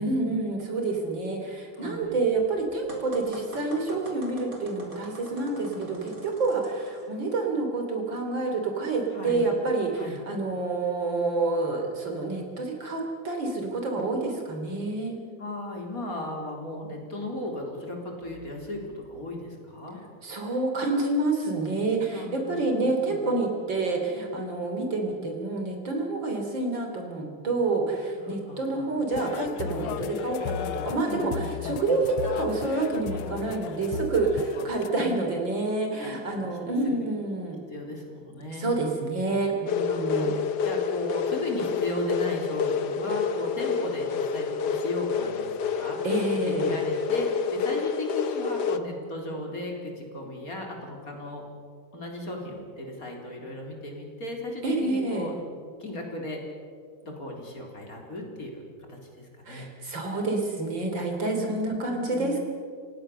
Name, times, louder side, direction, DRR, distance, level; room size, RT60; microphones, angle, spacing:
voice 1, 0.0-15.2 20.2-37.6 38.6-40.3 46.0-46.7 54.6-55.3 59.5-62.4, right 3 dB, 60° right, 2 dB, 4.1 m, -28 dB
voice 2, 1.7-2.1 5.6-6.1 9.1-9.5 9.9-10.2 15.4-20.0 22.1-23.2 28.2-28.9 31.1-32.0 34.6-34.7 34.9-35.4 36.0-36.5 36.8-37.1 37.7-38.7 39.9-46.0 46.4-51.4 51.9-55.3 55.8-56.4 57.0-59.7 61.3-62.4, left 1 dB, 40° left, 0 dB, 4.1 m, -36 dB
sound 1, 2.9-7.1, right 1 dB, 40° right, 4.3 m, -44 dB
sound 2, 29.1-34.9, left 9 dB, 80° left, 1.7 m, -35 dB
sound 3, 39.7-48.8, left 6 dB, 60° left, 1.4 m, -28 dB
29.5 x 17.0 x 6.8 m, 2.1 s
omnidirectional pair, 2.3 m